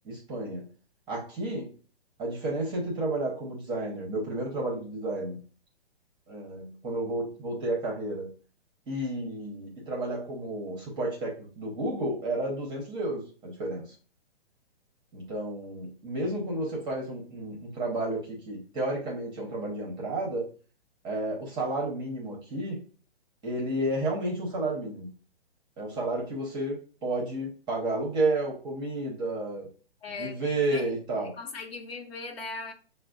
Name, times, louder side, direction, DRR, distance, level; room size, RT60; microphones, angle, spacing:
voice 1, 0.0-0.6 1.1-1.7 2.2-5.4 6.3-8.3 8.9-13.8 15.1-20.4 21.0-22.8 23.4-25.1 25.8-29.6 30.2-31.3, right 2 dB, 15° right, 0.8 m, -31 dB
voice 2, 30.0-30.9 31.4-32.7, left 4 dB, 70° left, 0.9 m, -39 dB
5.7 x 2.1 x 2.4 m
hypercardioid pair, 140°, 32 cm